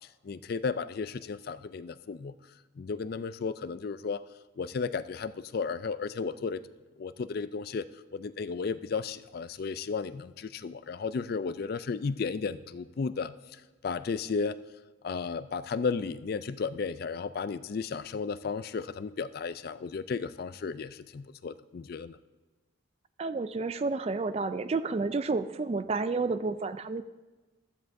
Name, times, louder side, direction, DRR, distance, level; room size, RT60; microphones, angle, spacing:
voice 1, 0.2-2.3 2.8-4.2 4.6-6.6 7.0-7.9 8.1-14.6 15.0-22.2, left 5 dB, 45° left, 14 dB, 0.3 m, -34 dB
voice 2, 23.2-27.0, right 3 dB, 30° right, 13 dB, 0.3 m, -30 dB
15.0 x 12.5 x 2.6 m, 1.2 s
head